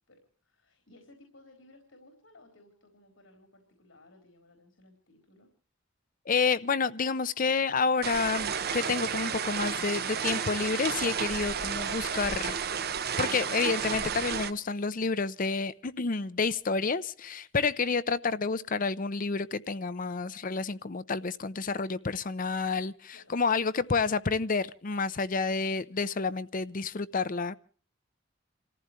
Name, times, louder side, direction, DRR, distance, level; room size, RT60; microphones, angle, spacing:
voice 1, 0.1-5.5 23.1-23.3, left 2 dB, 90° left, 4.1 m, -58 dB
voice 2, 6.3-12.6 13.2-27.5, left 4 dB, 45° left, 0.7 m, -29 dB
sound 1, 8.0-14.5, right 7 dB, 55° right, 0.9 m, -32 dB
29.0 x 15.0 x 3.1 m
head